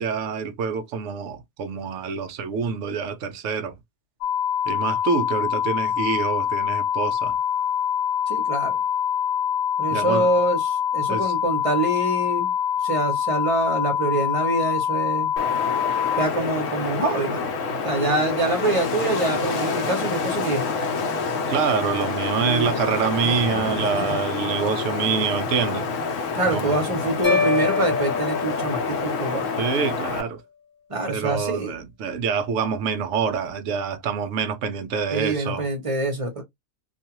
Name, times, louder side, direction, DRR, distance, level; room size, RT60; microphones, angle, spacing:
voice 1, 0.0-3.8 4.7-7.3 9.9-10.3 11.1-11.3 21.5-25.9 26.5-26.8 29.6-30.4 31.1-35.7, right 6 dB, 65° right, 0.7 m, -26 dB
sound 1, 4.2-16.3, left 8 dB, 80° left, 1.2 m, -24 dB
voice 2, 8.3-8.7 9.8-12.5 12.8-15.3 16.1-17.5 17.8-20.6 22.4-22.8 23.2-23.4 24.1-24.2 26.3-29.6 30.9-31.7 35.1-36.4, right 2 dB, 30° right, 0.6 m, -25 dB
Wind, 15.4-30.2, left 4 dB, 60° left, 0.9 m, -27 dB
sound 2, 27.2-29.5, left 5 dB, 30° left, 0.3 m, -25 dB
2.6 x 2.4 x 2.8 m
omnidirectional pair, 1.8 m